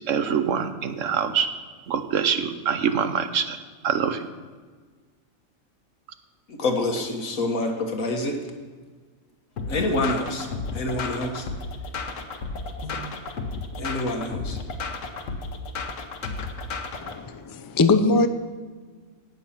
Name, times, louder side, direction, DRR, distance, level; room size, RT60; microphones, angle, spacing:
voice 1, 0.1-1.5 1.9-3.6 3.8-4.2, right 7 dB, 70° right, 10 dB, 1.2 m, -24 dB
voice 2, 6.5-8.4 9.7-10.5 10.7-11.5 12.8-13.0 13.8-14.6, left 2 dB, 85° left, 3 dB, 1.9 m, -27 dB
sound 1, 9.6-17.2, left 3 dB, 70° left, 1.4 m, -33 dB
voice 3, 17.0-18.3, left 3 dB, 30° left, 9 dB, 0.4 m, -21 dB
17.5 x 6.5 x 5.8 m, 1.5 s
omnidirectional pair, 1.4 m